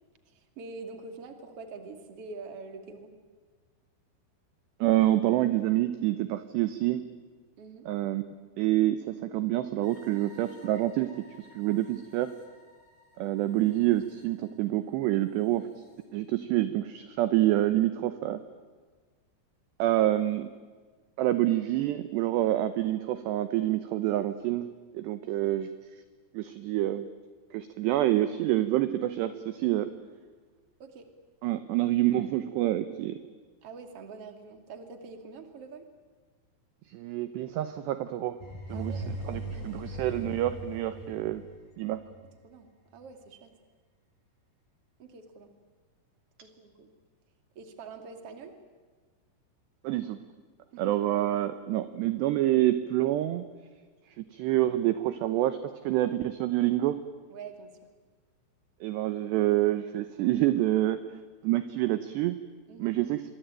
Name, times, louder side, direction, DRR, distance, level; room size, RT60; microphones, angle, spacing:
voice 1, 0.3-3.1 7.6-7.9 25.2-25.3 30.8-31.1 33.6-35.9 38.7-39.1 39.6-39.7 42.4-42.7 42.9-43.5 45.0-45.5 46.4-46.9 47.5-48.5 50.7-51.0 57.3-57.8 62.7-63.0, right 4 dB, 35° right, 6 dB, 2.8 m, -45 dB
voice 2, 4.8-7.0 7.9-8.3 8.6-12.3 13.2-15.7 16.1-18.4 19.8-20.5 21.2-24.7 24.9-25.7 26.3-27.1 27.5-29.9 31.4-33.2 36.9-38.4 38.7-41.4 41.8-42.0 49.8-50.2 50.8-53.4 54.3-57.0 58.8-61.0 61.4-62.4 62.8-63.2, right 14 dB, 75° right, 11 dB, 2.7 m, -27 dB
sound 1, 9.8-16.0, left 2 dB, 70° left, 7.8 m, -57 dB
sound 2, 38.4-42.3, right 1 dB, 50° left, 5.8 m, -39 dB
27.0 x 23.0 x 9.0 m, 1.4 s
omnidirectional pair, 5.7 m